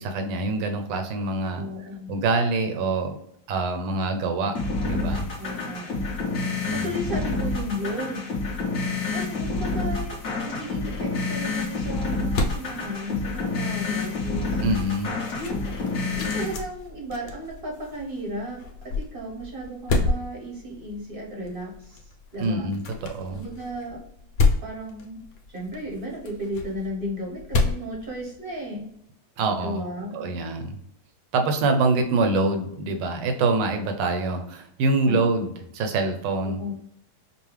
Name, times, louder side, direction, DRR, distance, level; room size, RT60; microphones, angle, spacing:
voice 1, 0.0-1.6 2.1-3.1 3.5-4.6 4.8-5.3 6.7-7.2 14.6-15.1 22.4-23.4 29.4-29.8 30.1-30.8 31.3-36.6, right 3 dB, 75° right, 5 dB, 1.3 m, -25 dB
voice 2, 1.5-2.1 5.4-8.3 9.1-10.2 10.4-14.6 15.4-15.8 16.1-22.7 23.3-24.0 24.6-25.2 25.5-28.9 29.6-30.3 35.1-35.3 36.4-36.8, equal, 40° right, -2 dB, 0.9 m, -34 dB
sound 1, 4.5-16.5, left 3 dB, 50° left, 1.2 m, -28 dB
sound 2, 10.7-28.8, left 3 dB, 80° left, 1.5 m, -31 dB
5.5 x 2.3 x 3.2 m, 0.74 s
omnidirectional pair, 2.1 m